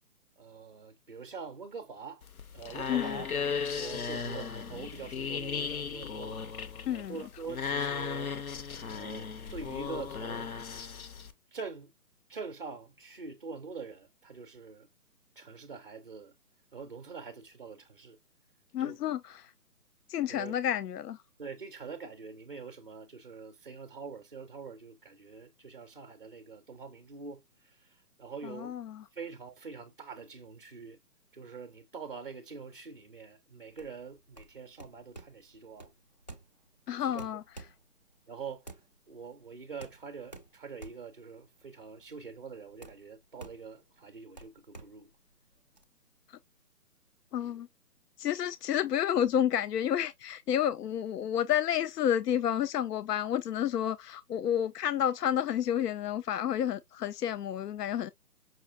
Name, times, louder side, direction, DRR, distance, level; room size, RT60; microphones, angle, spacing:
voice 1, 0.4-2.2 2.5-8.3 8.9-10.5 11.5-11.9 12.3-14.9 15.4-16.3 16.7-18.2 18.8-19.0 20.3-20.6 21.4-28.7 29.1-31.0 31.3-35.9 37.0-37.3 38.3-38.8 39.1-45.1, right 5 dB, 40° right, 0.5 m, -45 dB
sound 1, 2.2-11.3, left 6 dB, 65° left, 0.9 m, -36 dB
voice 2, 2.9-3.2 6.9-7.2 18.7-19.5 20.1-21.2 28.4-29.0 36.9-37.4 46.3-46.4 47.3-47.7 48.2-58.1, left 10 dB, 80° left, 0.5 m, -30 dB
sound 2, 33.7-45.8, right 2 dB, 30° left, 0.4 m, -51 dB
5.5 x 2.7 x 2.3 m
hypercardioid pair, 160°, 46 cm